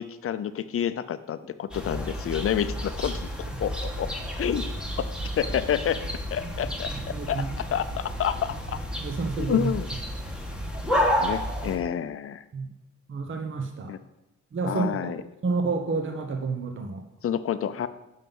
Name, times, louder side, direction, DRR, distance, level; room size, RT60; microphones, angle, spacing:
voice 1, 0.0-3.1 3.6-4.1 4.4-4.7 5.0-5.1 5.4-6.0 6.3-7.4 7.7-8.8 9.4-9.9 11.2-12.4 13.9-14.0 14.6-15.2 17.2-17.9, left 9 dB, 45° left, 12 dB, 0.6 m, -28 dB
sound 1, 1.7-11.8, equal, 5° right, 1.5 m, -31 dB
voice 2, 6.6-7.5 9.0-9.7 12.5-12.7 13.1-13.9 14.5-17.1, right 4 dB, 40° right, 4 dB, 1.0 m, -30 dB
7.6 x 5.6 x 5.4 m, 0.89 s
cardioid pair, 90°, 30 cm